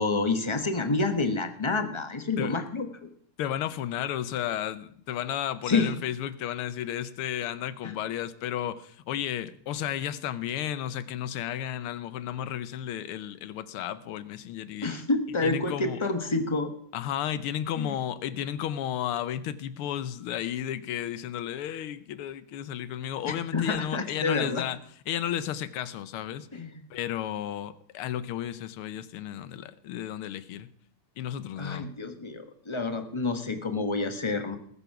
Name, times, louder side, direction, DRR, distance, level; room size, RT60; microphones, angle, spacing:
voice 1, 0.0-3.1 5.6-6.0 7.8-7.9 14.8-16.7 17.8-17.9 23.2-24.6 26.5-26.8 31.6-34.6, left 3 dB, 40° left, 8 dB, 0.4 m, -28 dB
voice 2, 3.4-14.9 15.4-16.0 16.9-24.8 25.1-26.5 26.9-30.7 31.2-31.9, left 10 dB, 85° left, 15 dB, 1.7 m, -33 dB
19.5 x 7.0 x 5.9 m, 0.63 s
omnidirectional pair, 2.4 m